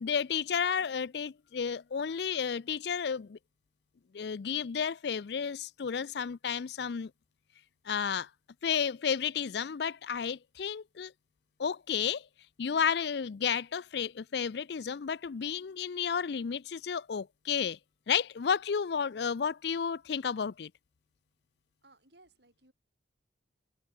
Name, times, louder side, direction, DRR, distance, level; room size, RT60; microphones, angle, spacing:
voice 1, 0.0-3.4 4.1-7.1 7.8-8.3 8.6-11.1 11.6-12.3 12.6-17.8 18.1-20.7, left 7 dB, 65° left, 0.4 m, -32 dB
voice 2, 21.8-22.7, right 2 dB, 65° right, 7.5 m, -61 dB
head